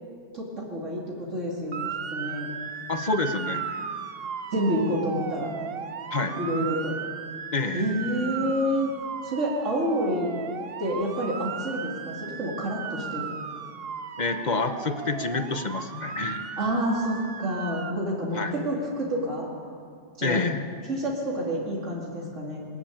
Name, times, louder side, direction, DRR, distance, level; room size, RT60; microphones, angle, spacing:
voice 1, 0.3-2.5 4.5-5.5 6.4-6.9 7.7-8.9 9.2-10.3 10.8-13.3 16.6-19.5 20.2-20.4 20.9-22.6, equal, 85° right, -3 dB, 3.1 m, -28 dB
Motor vehicle (road) / Siren, 1.7-17.9, right 7 dB, 55° right, 1.0 m, -36 dB
voice 2, 2.9-3.8 6.1-6.4 7.5-7.9 14.2-16.5 18.3-18.5 20.2-20.6, left 3 dB, 40° left, 8 dB, 1.2 m, -28 dB
21.5 x 13.5 x 9.1 m, 2.3 s
omnidirectional pair, 1.2 m